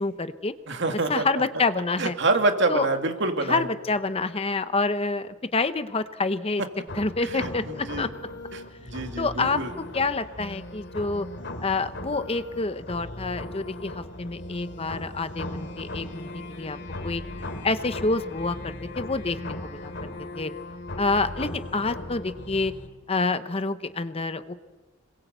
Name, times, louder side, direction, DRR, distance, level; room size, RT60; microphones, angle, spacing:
voice 1, 0.0-0.5 1.1-2.2 2.7-2.9 3.4-6.6 6.9-8.1 9.2-9.6 9.9-11.3 11.6-16.8 17.0-17.2 17.6-20.1 20.3-20.5 21.0-22.7 23.1-24.5, left 3 dB, 30° left, 12 dB, 0.8 m, -27 dB
voice 2, 0.7-1.2 2.0-3.6 7.2-8.1 8.5-8.6 8.9-9.7, right 2 dB, 60° right, 5 dB, 2.4 m, -26 dB
sound 1, 6.9-22.9, left 1 dB, 60° left, 2.5 m, -38 dB
26.5 x 21.5 x 8.1 m, 1.2 s
head